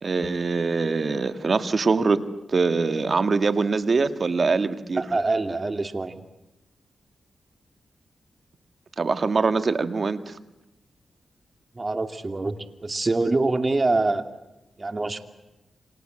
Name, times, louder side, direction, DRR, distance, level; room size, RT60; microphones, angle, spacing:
voice 1, 0.0-2.2 2.5-5.0 9.0-10.4, right 4 dB, 55° right, 9 dB, 1.9 m, -23 dB
voice 2, 4.9-6.2 11.7-14.2 14.8-15.2, right 3 dB, 35° right, 7 dB, 2.7 m, -25 dB
29.0 x 26.0 x 7.9 m, 0.95 s
cardioid pair, 50°, 0 cm